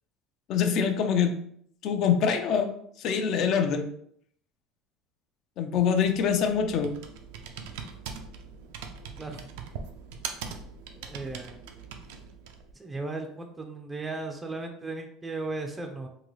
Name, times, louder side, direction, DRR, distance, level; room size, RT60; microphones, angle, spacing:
voice 1, 0.5-1.3 1.8-2.7 3.0-3.9 5.6-7.0, left 7 dB, 50° left, 6 dB, 0.5 m, -24 dB
Computer keyboard, 5.7-12.7, right 6 dB, 90° right, 0.4 m, -42 dB
voice 2, 9.2-9.5 11.0-11.6 12.7-16.1, right 3 dB, 10° right, 3 dB, 0.4 m, -36 dB
3.8 x 2.3 x 3.1 m, 0.67 s
cardioid pair, 135°, 0 cm